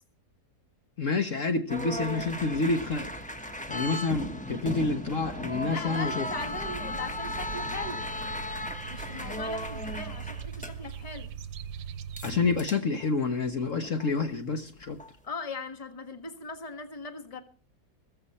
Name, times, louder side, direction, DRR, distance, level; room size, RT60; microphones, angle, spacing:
voice 1, 1.0-3.1 3.7-6.3 12.2-15.0, left 3 dB, 55° left, 6 dB, 1.5 m, -28 dB
sound 1, 1.7-10.9 12.2-12.3 12.6-13.1 13.8-14.1 14.8-15.1, left 1 dB, 5° left, 1.0 m, -36 dB
voice 2, 5.7-8.1 8.9-11.3 15.2-17.4, left 3 dB, 25° left, 7 dB, 1.5 m, -39 dB
sound 2, 6.2-12.6, right 8 dB, 85° right, 1.4 m, -41 dB
15.0 x 15.0 x 4.3 m, 0.40 s
omnidirectional pair, 1.7 m